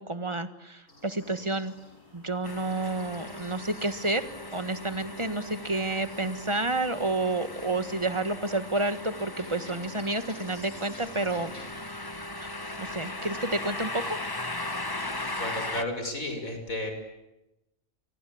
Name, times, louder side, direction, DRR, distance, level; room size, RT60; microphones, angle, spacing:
voice 1, 0.0-1.7 2.1-4.2 4.5-11.5 11.9-12.1 12.4-12.5 12.8-14.2, right 2 dB, 20° right, 11 dB, 1.6 m, -30 dB
sound 1, 0.9-11.7, equal, 70° left, 8.3 m, -52 dB
sound 2, 2.4-15.8, left 2 dB, 15° left, 1.2 m, -38 dB
voice 2, 15.4-16.9, left 1 dB, 90° left, 6 dB, 6.3 m, -33 dB
28.5 x 24.0 x 8.7 m, 0.92 s
omnidirectional pair, 1.4 m